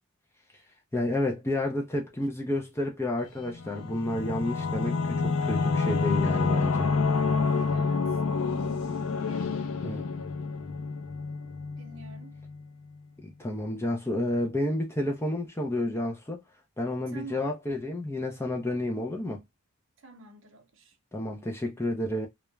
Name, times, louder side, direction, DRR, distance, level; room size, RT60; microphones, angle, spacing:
voice 1, 0.9-6.9 9.8-10.1 13.2-16.4 16.8-19.4 21.1-22.3, left 1 dB, 10° left, 0.4 m, -30 dB
Singing / Musical instrument, 3.5-12.6, left 4 dB, 75° left, 0.4 m, -28 dB
voice 2, 7.7-8.2 9.3-9.7 11.8-12.3 17.1-17.5 20.0-21.0, right 3 dB, 55° right, 0.7 m, -47 dB
2.3 x 2.0 x 3.1 m
head